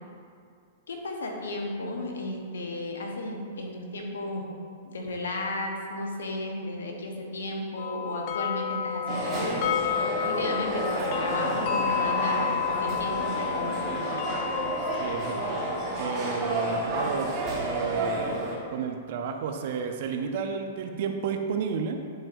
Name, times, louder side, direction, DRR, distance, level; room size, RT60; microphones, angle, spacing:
voice 1, 0.9-4.5 4.8-13.9, left 1 dB, 70° left, 1 dB, 1.0 m, -34 dB
sound 1, 7.8-18.3, left 9 dB, 45° left, 0.5 m, -32 dB
sound 2, 9.1-18.6, right 2 dB, 30° right, 1.5 m, -31 dB
voice 2, 15.0-15.6 16.0-18.4 18.7-22.0, right 6 dB, 55° right, 5 dB, 0.6 m, -32 dB
11.0 x 4.4 x 2.6 m, 2.3 s
figure-of-eight pair, 110°, 0 cm